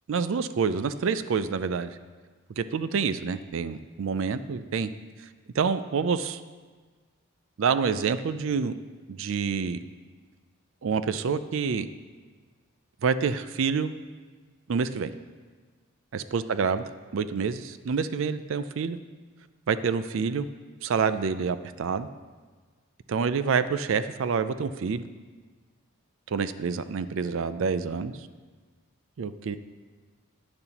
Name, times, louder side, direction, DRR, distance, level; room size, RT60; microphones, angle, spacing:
voice 1, 0.1-2.0 2.6-4.9 5.5-6.4 7.6-8.8 9.1-9.8 10.8-11.9 13.0-13.9 14.7-15.1 16.1-16.8 17.1-19.0 19.7-20.5 20.8-22.1 23.1-25.0 26.3-28.1 29.2-29.6, right 5 dB, 60° right, 13 dB, 0.4 m, -27 dB
11.0 x 9.8 x 2.9 m, 1.4 s
head